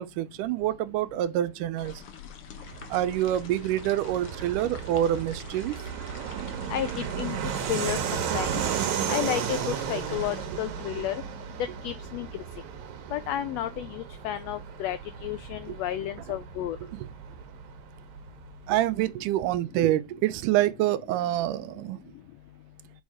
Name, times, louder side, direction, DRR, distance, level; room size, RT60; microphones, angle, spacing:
voice 1, 0.0-1.9 2.9-5.8 15.7-15.8 18.7-22.0, right 13 dB, 90° right, 2.2 m, -26 dB
sound 1, 1.8-10.4, left 7 dB, 60° left, 1.7 m, -46 dB
Fixed-wing aircraft airplane, 2.6-18.8, right 8 dB, 70° right, 2.4 m, -34 dB
voice 2, 6.7-8.6 9.1-11.2 11.6-12.4 13.1-16.8, left 12 dB, 90° left, 1.4 m, -32 dB
6.3 x 5.3 x 4.8 m
omnidirectional pair, 3.6 m